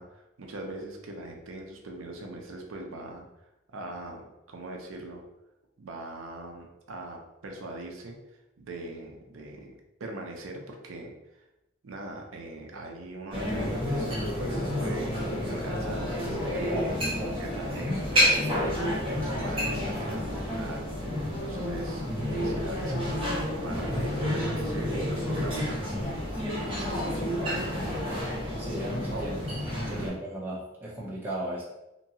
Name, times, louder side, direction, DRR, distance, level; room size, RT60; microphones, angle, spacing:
voice 1, 0.0-3.2 3.7-5.2 5.8-8.2 8.6-11.4 11.8-16.0 16.5-17.1 17.4-27.9 29.1-29.5 29.9-30.2, right 2 dB, 75° right, 2 dB, 0.5 m, -41 dB
sound 1, 13.3-30.1, equal, 25° right, 1.1 m, -30 dB
voice 2, 16.7-17.5 28.6-29.4 29.7-31.6, right 1 dB, 10° right, -7 dB, 0.5 m, -35 dB
2.8 x 2.6 x 2.7 m, 0.93 s
head